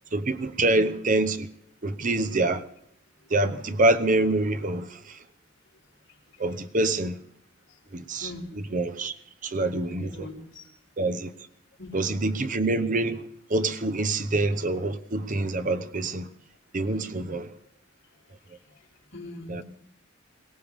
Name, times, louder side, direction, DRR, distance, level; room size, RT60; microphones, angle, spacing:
voice 1, 0.1-1.5 1.8-2.6 3.3-5.0 6.4-7.2 7.9-9.1 9.4-10.3 11.0-11.3 11.9-16.3 16.7-17.5 19.5-19.6, right 2 dB, 40° right, 0.9 m, -26 dB
voice 2, 9.8-10.6 11.8-11.9 19.1-19.6, left 2 dB, 60° left, 4.3 m, -41 dB
22.0 x 17.0 x 3.6 m
head